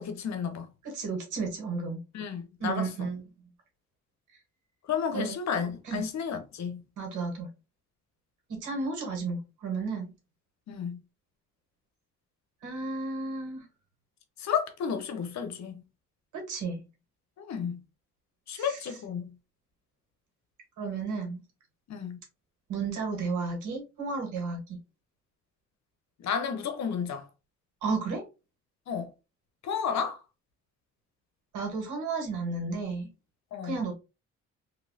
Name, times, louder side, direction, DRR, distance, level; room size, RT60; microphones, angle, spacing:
voice 1, 0.0-0.7 2.1-3.1 4.9-6.8 10.7-11.0 14.4-15.8 17.4-17.8 18.5-19.3 21.9-22.2 26.2-27.2 28.9-29.1 29.6-30.2 33.5-33.8, left 7 dB, 65° left, 0.9 m, -32 dB
voice 2, 0.8-2.0 2.6-3.2 5.1-5.3 5.8-6.0 7.0-7.5 8.5-10.1 12.6-13.6 16.3-16.8 18.5-18.8 20.8-21.4 22.7-24.8 27.8-28.2 31.5-33.1 33.6-34.0, right 4 dB, 80° right, 1.6 m, -33 dB
3.1 x 2.9 x 2.7 m
cardioid pair, 90°, 30 cm